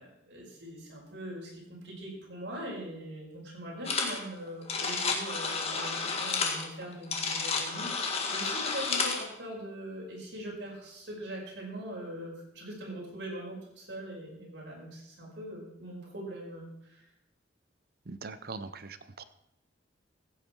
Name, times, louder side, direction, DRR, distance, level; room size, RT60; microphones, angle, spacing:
voice 1, 0.0-17.0, right 1 dB, 75° right, -3 dB, 5.5 m, -42 dB
sound 1, 3.8-4.2 4.5-9.2, left 4 dB, 30° left, 1.8 m, -31 dB
voice 2, 18.1-19.2, right 4 dB, 55° right, 12 dB, 0.7 m, -41 dB
15.5 x 8.8 x 4.6 m, 0.81 s
head